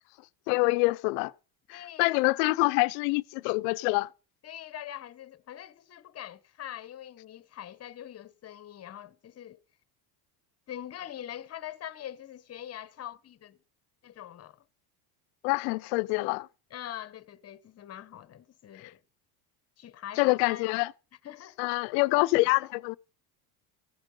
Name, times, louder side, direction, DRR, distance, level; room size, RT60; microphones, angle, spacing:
voice 1, 0.5-1.3 1.7-4.1 15.4-16.5 18.8-18.9 20.2-20.9 21.6-23.0, left 25 dB, 80° left, 0.7 m, -26 dB
voice 2, 1.7-2.1 4.4-9.6 10.7-13.6 14.0-14.6 16.7-19.0 19.8-20.7 21.2-21.6, left 11 dB, 30° left, 1.0 m, -43 dB
15.5 x 9.0 x 5.4 m
cardioid pair, 130°, 47 cm